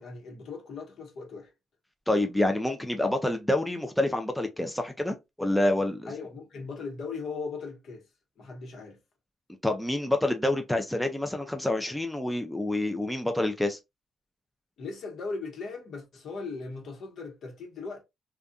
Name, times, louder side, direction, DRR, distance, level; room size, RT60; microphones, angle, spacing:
voice 1, 0.0-1.5 6.1-8.0 8.4-9.0 14.8-18.0, left 4 dB, 65° left, 1.0 m, -38 dB
voice 2, 2.1-6.1 9.6-13.8, left 1 dB, 5° left, 0.4 m, -27 dB
2.5 x 2.2 x 2.3 m
cardioid pair, 80°, 0 cm